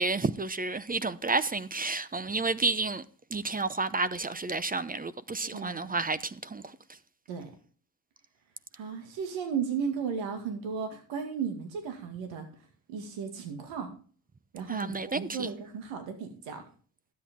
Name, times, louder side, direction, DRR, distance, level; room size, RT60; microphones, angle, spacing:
voice 1, 0.0-3.0 3.3-6.8 14.7-15.5, right 3 dB, 20° right, 0.7 m, -31 dB
voice 2, 5.4-6.0 7.3-7.5 8.7-12.5 12.9-13.9 14.5-16.6, right 6 dB, 90° right, 2.2 m, -35 dB
12.5 x 8.5 x 3.7 m
cardioid pair, 75°, 45 cm